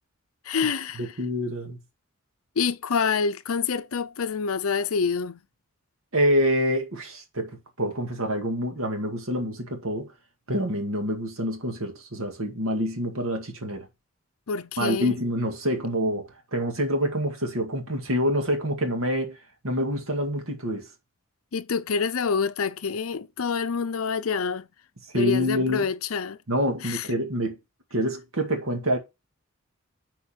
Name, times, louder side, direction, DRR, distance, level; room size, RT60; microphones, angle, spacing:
voice 1, 0.4-1.1 2.6-5.4 14.5-15.1 21.5-24.7 25.1-26.4 26.8-27.1, left 5 dB, 75° left, 0.6 m, -27 dB
voice 2, 1.0-1.8 6.1-7.5 7.8-10.1 10.5-13.9 14.8-19.4 19.6-20.9 25.1-25.9 26.5-27.5 27.9-29.0, equal, 70° right, 2.0 m, -26 dB
8.7 x 4.6 x 4.5 m
head